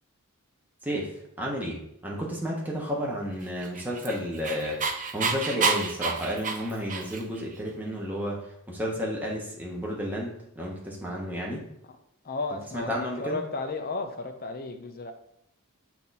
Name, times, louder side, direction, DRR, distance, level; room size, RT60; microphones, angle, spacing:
voice 1, 1.4-4.8 5.1-8.4 8.7-11.6 12.7-13.4, equal, 10° right, -3 dB, 1.2 m, -32 dB
Dog, 3.6-7.4, right 5 dB, 35° right, 0.6 m, -29 dB
voice 2, 12.2-15.1, left 3 dB, 45° left, 5 dB, 0.8 m, -34 dB
8.6 x 3.0 x 4.1 m, 0.80 s
head